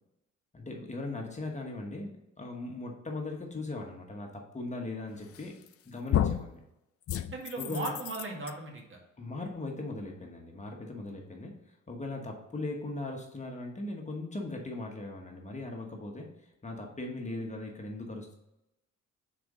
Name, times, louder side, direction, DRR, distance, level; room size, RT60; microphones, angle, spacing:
voice 1, 0.5-5.6 5.8-6.6 7.6-7.9 9.2-16.3 16.6-18.3, left 2 dB, 25° left, 1 dB, 1.2 m, -39 dB
sound 1, 5.3-5.7 6.1-6.5 7.1-8.5, left 11 dB, 50° left, 0.5 m, -31 dB
voice 2, 7.3-9.0, right 3 dB, 40° right, 1 dB, 1.8 m, -37 dB
6.0 x 4.2 x 4.9 m, 0.90 s
cardioid pair, 90°, 30 cm